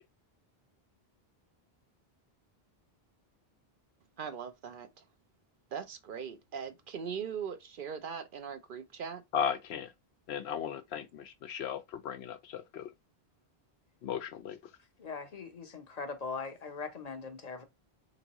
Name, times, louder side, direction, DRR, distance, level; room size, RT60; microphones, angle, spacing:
voice 1, 4.2-5.0 5.7-9.2, right 7 dB, 60° right, 0.7 m, -40 dB
voice 2, 9.3-9.9 10.3-12.9 14.0-14.6, left 8 dB, 85° left, 0.9 m, -36 dB
voice 3, 15.0-17.6, left 4 dB, 45° left, 0.7 m, -40 dB
3.5 x 3.0 x 2.8 m
omnidirectional pair, 1.1 m